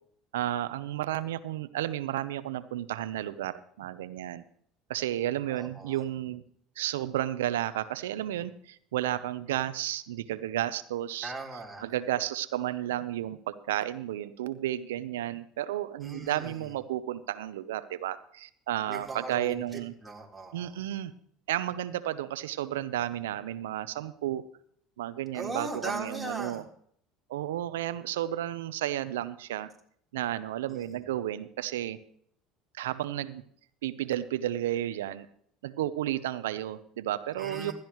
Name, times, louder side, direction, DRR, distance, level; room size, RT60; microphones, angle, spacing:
voice 1, 0.3-4.4 4.9-6.4 6.8-11.3 11.8-19.9 20.5-21.1 21.5-24.4 25.0-26.6 27.3-29.7 30.1-32.0 32.7-33.4 33.8-35.3 35.6-37.7, right 13 dB, 85° right, 14 dB, 0.8 m, -32 dB
voice 2, 5.5-6.0 11.2-11.8 16.0-16.7 18.9-20.8 25.3-26.6 30.7-31.0 37.4-37.7, right 3 dB, 10° right, -2 dB, 3.8 m, -39 dB
15.5 x 13.0 x 3.1 m, 0.64 s
hypercardioid pair, 85°, 0 cm